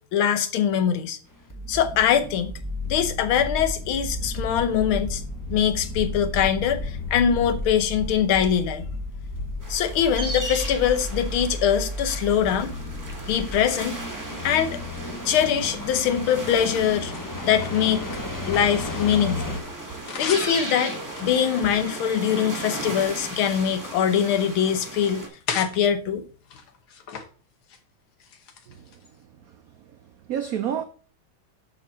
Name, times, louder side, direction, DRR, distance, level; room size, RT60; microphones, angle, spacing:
voice 1, 0.1-1.2 1.7-2.5 2.9-5.2 5.5-8.9 9.7-12.8 13.3-14.0 14.4-14.8 15.2-17.1 17.4-18.0 18.5-19.6 20.2-20.9 21.2-25.2 25.5-26.2, left 9 dB, 85° left, 1.7 m, -23 dB
sound 1, 1.4-19.6, left 2 dB, 15° left, 0.9 m, -33 dB
sound 2, 9.6-25.3, right 1 dB, 10° right, 1.1 m, -36 dB
sound 3, 14.4-15.3 15.9-19.4 19.7-20.6 21.1-22.4 22.8-24.5 24.9-25.8 26.4-27.3 27.5-27.8 28.2-29.2, left 6 dB, 55° left, 1.5 m, -39 dB
voice 2, 28.7-29.0 29.4-30.8, right 9 dB, 90° right, 0.7 m, -31 dB
6.6 x 6.5 x 4.1 m
omnidirectional pair, 2.2 m